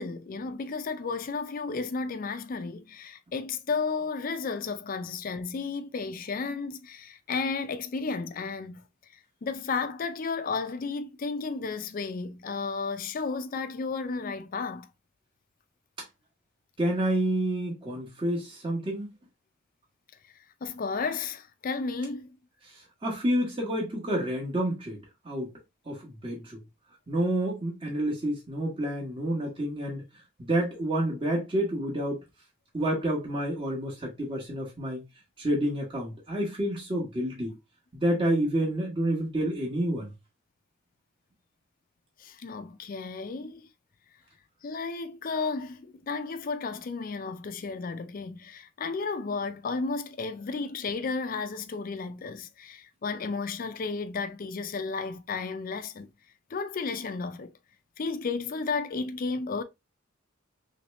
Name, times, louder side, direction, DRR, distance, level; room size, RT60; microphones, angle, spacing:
voice 1, 0.0-8.8 9.4-14.9 20.6-22.4 42.2-43.7 44.6-56.1 56.5-57.5 58.0-59.6, left 4 dB, 45° left, 0.4 m, -33 dB
voice 2, 16.8-19.1 22.7-25.0 25.2-25.5 25.9-26.6 27.1-30.0 30.4-32.2 32.7-35.0 35.4-37.5 37.9-40.1, right 1 dB, 25° right, 1.0 m, -29 dB
3.2 x 2.9 x 3.0 m
head